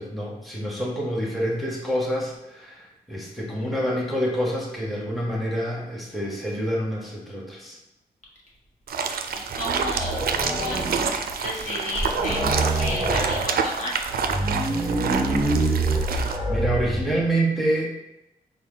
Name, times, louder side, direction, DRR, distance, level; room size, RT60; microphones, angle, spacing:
voice 1, 0.0-7.8 16.5-17.9, right 1 dB, ahead, -4 dB, 1.1 m, -27 dB
sound 1, 8.9-16.4, right 6 dB, 65° right, 0.4 m, -28 dB
voice 2, 9.5-10.8 11.4-12.5 12.7-14.0, left 1 dB, 45° left, -4 dB, 1.4 m, -32 dB
sound 2, 9.8-11.3 11.6-11.7 11.9-13.5 14.1-17.3, right 2 dB, 15° right, 1.2 m, -26 dB
4.0 x 2.2 x 3.8 m, 0.93 s
cardioid pair, 50°, 17 cm